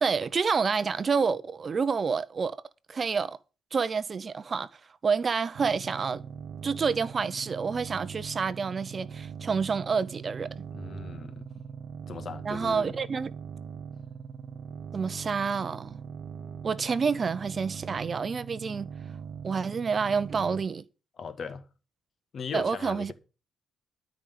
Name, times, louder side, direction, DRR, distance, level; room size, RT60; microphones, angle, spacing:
voice 1, 0.0-2.6 2.9-3.4 3.7-4.7 5.0-6.2 6.6-10.5 12.4-13.3 14.9-16.0 16.6-18.9 19.4-20.8 22.5-23.1, right 5 dB, 40° right, 0.6 m, -28 dB
sound 1, 5.6-20.6, right 6 dB, 65° right, 1.6 m, -41 dB
voice 2, 10.7-11.5 12.1-12.9 21.2-21.7 22.3-23.1, left 5 dB, 50° left, 1.7 m, -38 dB
12.5 x 5.0 x 8.3 m
cardioid pair, 90°, 0 cm